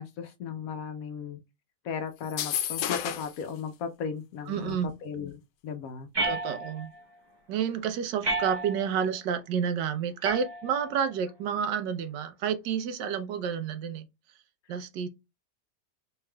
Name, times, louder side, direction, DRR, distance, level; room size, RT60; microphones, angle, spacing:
voice 1, 0.0-1.4 1.8-6.1, left 6 dB, 65° left, 0.9 m, -36 dB
sound 1, 2.2-3.4, left 10 dB, 85° left, 1.2 m, -31 dB
voice 2, 4.5-4.9 6.2-6.9 7.5-14.1 14.7-15.1, right 7 dB, 90° right, 1.4 m, -30 dB
sound 2, 6.1-7.0 8.2-9.0 10.2-11.1, right 2 dB, 35° right, 0.4 m, -32 dB
4.5 x 3.3 x 2.2 m
omnidirectional pair, 1.8 m